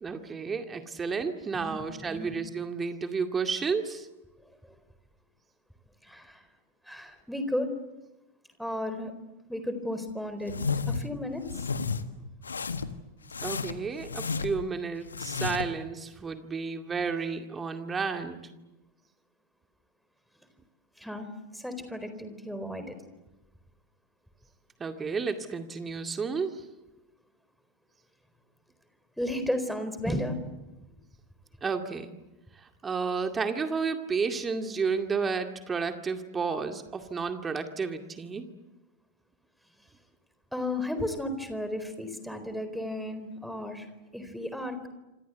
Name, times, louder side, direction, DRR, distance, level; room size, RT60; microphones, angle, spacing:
voice 1, 0.0-4.1 13.4-18.4 24.8-26.6 31.6-32.1 32.6-38.5, right 5 dB, 15° right, 6 dB, 2.2 m, -32 dB
voice 2, 1.5-2.3 4.6-4.7 6.0-6.5 6.9-7.7 8.6-9.1 9.5-10.5 10.9-11.6 21.0-21.3 21.5-22.9 29.2-30.4 40.5-44.9, left 1 dB, ahead, 9 dB, 4.2 m, -34 dB
sound 1, 10.5-11.1 11.4-12.0 12.4-13.0 13.3-14.7 15.1-15.7, left 5 dB, 75° left, 1.5 m, -32 dB
27.0 x 27.0 x 8.1 m, 1.0 s
figure-of-eight pair, 90°, 0 cm